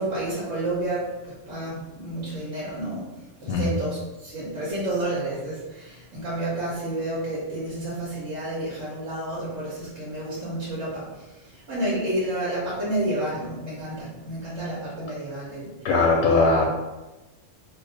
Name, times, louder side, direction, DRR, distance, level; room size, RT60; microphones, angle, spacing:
voice 1, 0.0-3.1 3.4-15.9, right 1 dB, 75° right, -8 dB, 1.2 m, -30 dB
voice 2, 15.8-16.7, left 3 dB, 85° left, -2 dB, 0.9 m, -20 dB
2.9 x 2.1 x 3.9 m, 1.1 s
omnidirectional pair, 1.3 m